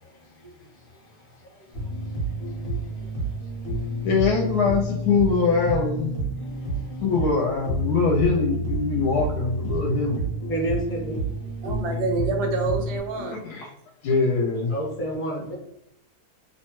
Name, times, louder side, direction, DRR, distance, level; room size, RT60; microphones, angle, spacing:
voice 1, 0.0-4.1 6.4-7.0 10.5-11.5 14.7-15.5, equal, 10° left, -4 dB, 0.6 m, -34 dB
sound 1, 1.7-13.0, right 1 dB, 40° left, 0.9 m, -29 dB
voice 2, 4.0-6.1 7.0-10.3 13.2-13.7 14.0-14.7, left 4 dB, 75° left, 1 dB, 1.0 m, -23 dB
voice 3, 11.6-13.4, right 4 dB, 80° right, 4 dB, 1.1 m, -27 dB
2.8 x 2.1 x 2.9 m, 0.80 s
omnidirectional pair, 1.8 m